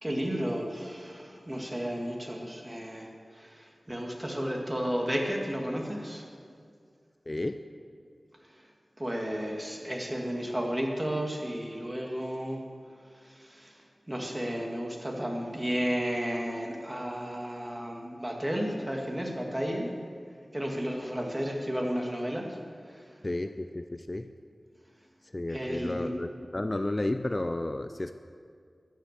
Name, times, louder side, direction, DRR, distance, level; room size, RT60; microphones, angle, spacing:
voice 1, 0.0-6.3 9.0-12.6 13.2-13.7 14.1-19.9 20.5-22.6 22.9-23.0 25.5-26.1, equal, 20° right, 1 dB, 2.1 m, -33 dB
voice 2, 7.3-7.6 23.2-24.3 25.3-28.1, left 2 dB, 35° left, 9 dB, 0.4 m, -32 dB
13.5 x 10.5 x 6.6 m, 2.2 s
wide cardioid pair, 75°, 0 cm